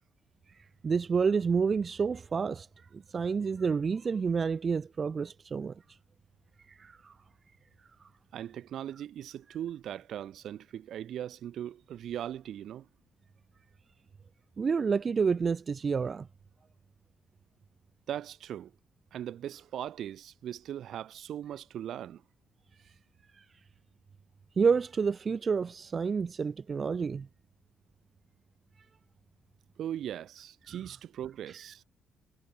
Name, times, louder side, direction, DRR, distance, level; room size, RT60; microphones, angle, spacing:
voice 1, 0.5-2.7 2.9-5.7 6.7-7.1 14.6-16.3 23.3-23.4 24.6-27.3 30.7-30.8, right 5 dB, 40° right, 0.9 m, -29 dB
voice 2, 8.3-12.9 18.1-18.7 19.1-22.2 29.8-31.8, right 10 dB, 70° right, 1.8 m, -39 dB
cardioid pair, 90°, 0 cm